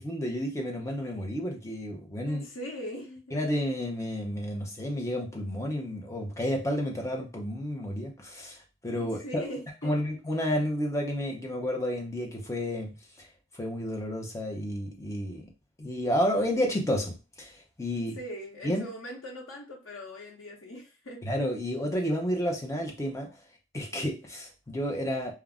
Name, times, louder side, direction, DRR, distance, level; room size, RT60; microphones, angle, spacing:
voice 1, 0.1-2.4 3.3-8.6 8.8-9.4 9.8-12.9 13.2-13.3 13.6-15.4 15.8-17.5 17.8-18.2 18.6-18.9 21.2-23.3 23.7-25.3, equal, 15° left, 1 dB, 0.6 m, -31 dB
voice 2, 2.3-3.2 9.0-9.9 17.9-21.2, equal, 90° left, 0 dB, 0.7 m, -40 dB
2.3 x 2.0 x 3.5 m, 0.30 s
head